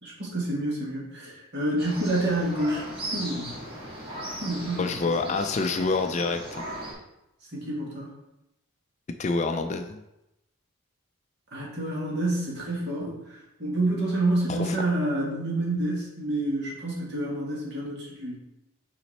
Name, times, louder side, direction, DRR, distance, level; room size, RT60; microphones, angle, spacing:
voice 1, 0.0-2.8 3.1-3.6 4.4-5.0 7.5-8.1 11.5-18.4, right 1 dB, 50° right, -4 dB, 1.9 m, -28 dB
sound 1, 1.8-6.9, right 1 dB, 25° right, 1.7 m, -37 dB
voice 2, 4.8-6.4 9.2-10.0 14.5-14.8, left 3 dB, 30° left, 6 dB, 0.3 m, -27 dB
5.9 x 4.2 x 4.1 m, 0.89 s
head